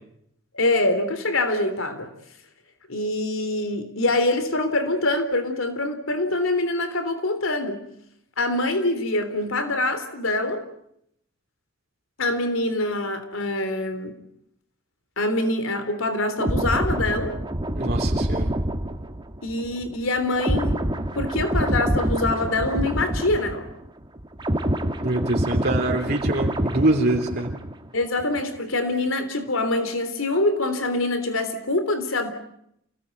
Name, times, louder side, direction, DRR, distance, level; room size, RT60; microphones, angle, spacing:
voice 1, 0.5-2.1 2.9-7.8 8.4-10.6 12.2-14.1 15.2-17.4 19.4-23.7 27.9-32.3, left 2 dB, 85° left, 10 dB, 3.5 m, -25 dB
sound 1, 16.4-23.9 24.2-27.9 28.2-28.4, right 1 dB, 25° right, 1.7 m, -26 dB
voice 2, 17.7-18.5 24.6-24.7 25.0-27.5, right 2 dB, 50° right, 1 dB, 3.3 m, -24 dB
28.5 x 18.5 x 9.3 m, 0.76 s
head